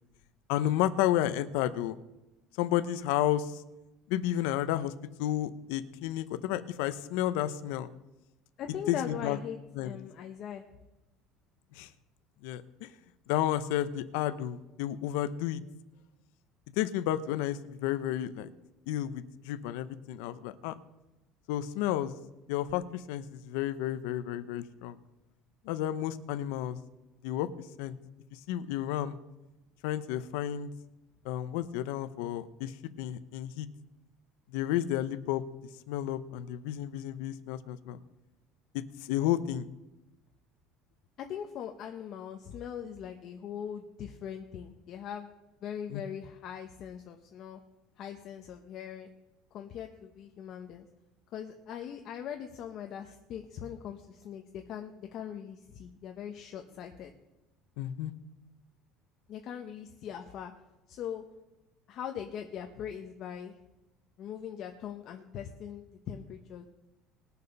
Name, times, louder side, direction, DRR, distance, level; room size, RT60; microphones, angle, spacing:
voice 1, 0.5-2.0 2.6-3.6 4.1-4.9 5.2-7.9 8.9-9.4 9.7-10.0 11.7-11.9 12.4-12.9 13.3-15.6 16.8-18.5 18.9-20.7 21.5-22.1 22.5-25.0 25.6-26.8 27.2-27.5 27.8-28.0 28.3-29.2 29.8-30.7 31.2-33.7 34.5-35.4 35.9-38.0 38.7-39.7 45.9-46.0 57.8-58.1, left 12 dB, 75° left, 13 dB, 0.8 m, -31 dB
voice 2, 8.6-10.6 39.2-39.3 41.2-45.3 45.6-47.6 48.0-49.1 49.5-50.9 51.3-57.1 59.3-60.5 60.9-61.2 61.9-63.5 64.2-66.7, left 9 dB, 35° left, 5 dB, 0.8 m, -41 dB
20.5 x 6.9 x 5.3 m, 0.99 s
cardioid pair, 180°, 0 cm